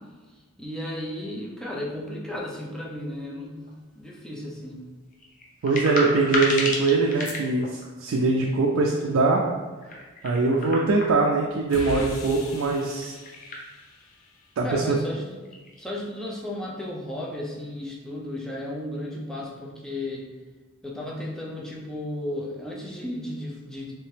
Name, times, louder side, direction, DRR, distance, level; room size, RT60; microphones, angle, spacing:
voice 1, 0.6-3.7 3.9-4.9 14.6-15.4 15.8-20.3 20.8-23.9, left 1 dB, 5° left, -4 dB, 0.5 m, -34 dB
sound 1, 3.6-3.7 5.1-7.9 9.8-11.5 12.9-13.6 14.0-14.1 15.1-15.2 15.4-15.9, left 1 dB, 40° left, 0.7 m, -32 dB
voice 2, 5.6-9.4 10.2-13.2 14.6-15.0, right 3 dB, 75° right, 0 dB, 0.4 m, -22 dB
sound 2, 11.7-14.4, left 2 dB, 85° left, 0.5 m, -39 dB
3.3 x 2.8 x 3.2 m, 1.3 s
head